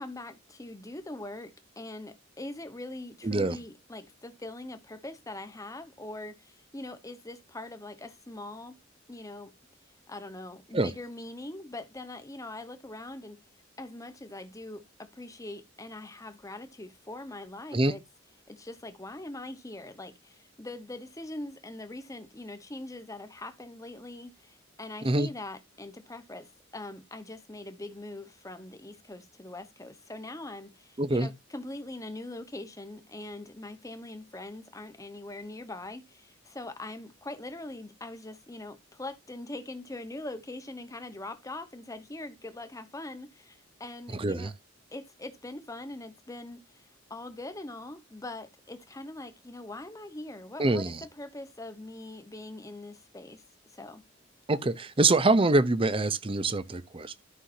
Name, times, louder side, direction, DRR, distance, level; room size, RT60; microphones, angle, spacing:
voice 1, 0.0-8.7 9.1-9.5 10.1-13.4 13.8-18.0 18.5-44.5 44.9-53.4 53.7-54.0, left 2 dB, 15° left, 1.0 m, -42 dB
voice 2, 3.2-3.6 10.7-10.9 17.7-17.9 25.0-25.3 31.0-31.3 44.2-44.5 50.6-51.0 54.5-57.2, right 2 dB, 25° right, 0.7 m, -25 dB
13.0 x 5.6 x 2.7 m
head